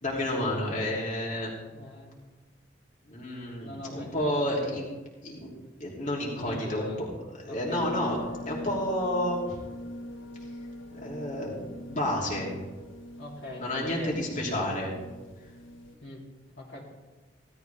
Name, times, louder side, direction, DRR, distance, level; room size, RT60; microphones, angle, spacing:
voice 1, 0.0-1.5 3.1-4.9 5.2-5.5 5.8-7.1 7.3-8.2 8.5-9.6 11.0-12.5 13.6-14.9, left 1 dB, 40° left, -4 dB, 3.2 m, -30 dB
voice 2, 1.7-2.3 3.6-4.8 6.2-7.0 7.5-7.9 13.2-13.6 14.0-14.2 16.0-16.2 16.6-16.8, left 1 dB, 65° left, -5 dB, 3.1 m, -43 dB
sound 1, 7.7-16.0, left 1 dB, 85° left, 1.5 m, -42 dB
17.0 x 13.0 x 3.5 m, 1.2 s
head